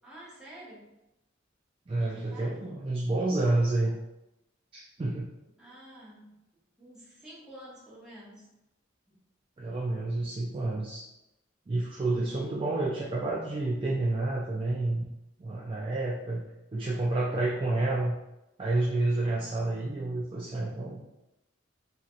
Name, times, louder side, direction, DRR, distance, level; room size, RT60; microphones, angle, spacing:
voice 1, 0.0-0.9 2.0-2.8 5.6-6.3 6.8-8.5 9.1-9.2, right 1 dB, 5° right, -8 dB, 0.9 m, -49 dB
voice 2, 1.9-4.0 4.7-5.3 9.6-11.0 11.7-15.0 15.4-18.2 18.6-21.1, right 2 dB, 25° right, -4 dB, 0.3 m, -29 dB
2.9 x 2.8 x 2.5 m, 0.92 s
head